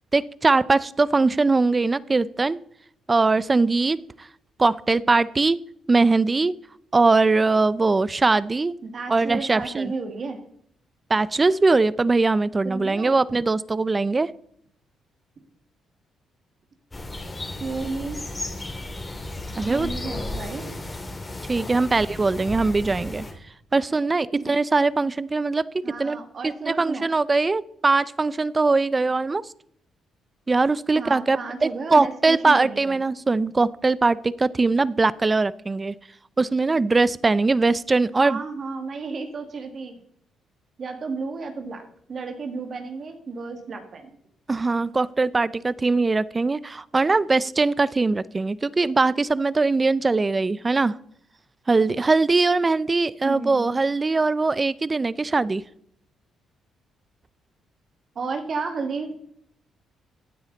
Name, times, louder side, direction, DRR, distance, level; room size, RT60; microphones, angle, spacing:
voice 1, 0.1-2.6 3.1-4.3 4.6-5.6 5.9-6.5 6.9-8.7 9.1-9.9 11.1-14.3 19.6-19.9 21.5-23.2 23.7-25.7 26.0-26.2 26.4-29.4 30.5-35.9 36.4-38.4 44.5-51.0 51.7-55.6, right 3 dB, 25° right, 19 dB, 0.5 m, -21 dB
voice 2, 8.8-10.4 12.6-13.1 17.6-18.2 19.7-20.7 24.3-24.5 25.8-27.1 30.9-33.0 38.2-39.9 40.8-44.1 53.2-53.7 58.2-59.1, right 4 dB, 50° right, 6 dB, 2.1 m, -32 dB
sound 1, 16.9-23.3, left 2 dB, 20° left, 2.8 m, -34 dB
15.5 x 9.6 x 4.0 m, 0.68 s
cardioid pair, 90°, 0 cm